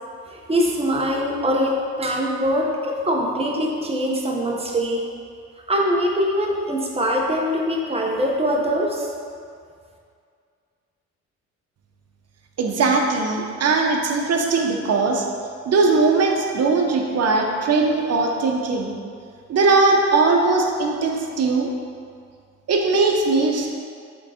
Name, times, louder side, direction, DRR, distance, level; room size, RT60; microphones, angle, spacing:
voice 1, 0.3-5.0 5.7-9.1, equal, 20° right, -1 dB, 1.1 m, -23 dB
voice 2, 12.6-15.2 15.7-18.9 19.5-21.7 22.7-23.7, right 3 dB, 55° right, 1 dB, 1.0 m, -19 dB
7.9 x 3.8 x 4.3 m, 2.3 s
cardioid pair, 90°, 30 cm